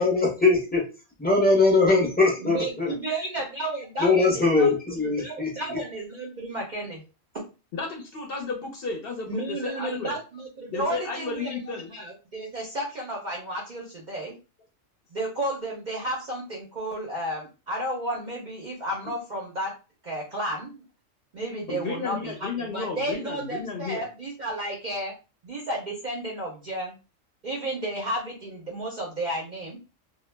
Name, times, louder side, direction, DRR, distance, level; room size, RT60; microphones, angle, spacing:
voice 1, 0.0-0.8 1.2-2.9 4.0-5.5, left 3 dB, 15° left, -2 dB, 0.4 m, -21 dB
voice 2, 2.4-7.0 7.3-7.4 9.3-14.4 15.1-19.7 20.0-20.8 21.3-25.1 25.4-27.0 27.4-29.8, right 1 dB, 55° right, -3 dB, 0.5 m, -32 dB
voice 3, 7.7-10.2 10.7-11.9 21.7-24.0, left 4 dB, 60° left, 1 dB, 0.7 m, -33 dB
2.2 x 2.0 x 3.1 m, 0.32 s
omnidirectional pair, 1.3 m